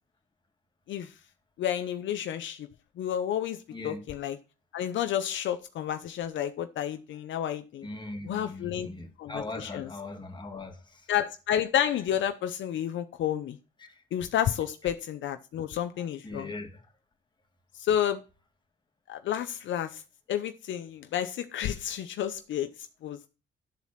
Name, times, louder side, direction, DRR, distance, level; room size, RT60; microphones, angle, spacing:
voice 1, 1.6-2.7 3.0-4.4 4.7-7.9 8.2-8.9 9.2-9.9 11.1-13.6 14.1-16.5 17.7-18.2 19.1-20.0 20.3-22.7 23.0-23.2, left 10 dB, 70° left, 0.7 m, -30 dB
voice 2, 3.7-4.0 7.8-11.1 13.8-14.0 16.2-16.8, left 2 dB, 20° left, 1.9 m, -40 dB
11.5 x 4.2 x 7.2 m
cardioid pair, 90°, 20 cm